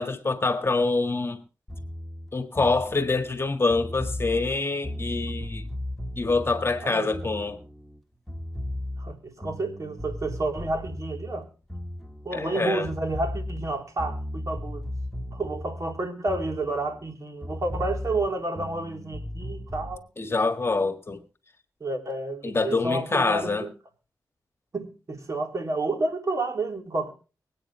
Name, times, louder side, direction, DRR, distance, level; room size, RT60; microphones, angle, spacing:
voice 1, 0.0-1.4 2.3-5.7 6.2-7.6 12.3-12.9 20.2-21.2 22.4-23.7, left 3 dB, 35° left, 1.7 m, -25 dB
sound 1, 1.7-8.0 8.3-12.6 12.8-17.1 17.4-20.0, left 1 dB, 5° left, 1.7 m, -36 dB
voice 2, 9.0-11.5 12.2-14.9 15.3-20.0 21.8-23.7 24.7-27.1, right 2 dB, 45° right, 3.6 m, -30 dB
24.0 x 9.0 x 3.2 m
cardioid pair, 75°, 7 cm